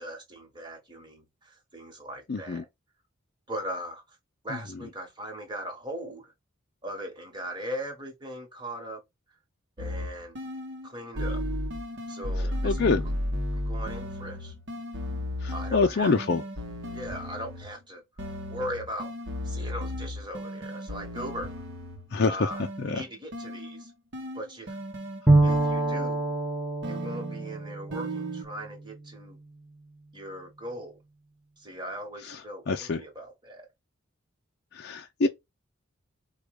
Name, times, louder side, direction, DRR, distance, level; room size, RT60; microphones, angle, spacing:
voice 1, 0.0-2.7 3.5-4.2 4.4-6.3 6.8-9.0 9.8-10.4 10.8-11.4 12.1-12.9 13.5-14.5 15.5-16.1 16.9-18.0 18.5-19.1 19.4-21.5 22.3-23.9 24.3-24.8 25.4-26.3 26.8-29.4 30.1-31.0 31.6-33.7, equal, 20° right, 1.3 m, -39 dB
voice 2, 2.3-2.6 12.6-13.0 15.4-16.4 22.1-22.5 22.8-23.0 32.2-32.4 32.7-33.0 34.7-35.3, left 4 dB, 50° left, 0.4 m, -26 dB
sound 1, 9.8-10.9 11.2-17.8 18.2-22.1 22.5-26.2 26.8-28.4, left 1 dB, 55° right, 0.9 m, -35 dB
Bowed string instrument, 25.3-29.0, right 2 dB, 5° right, 0.8 m, -26 dB
4.7 x 2.3 x 4.7 m
head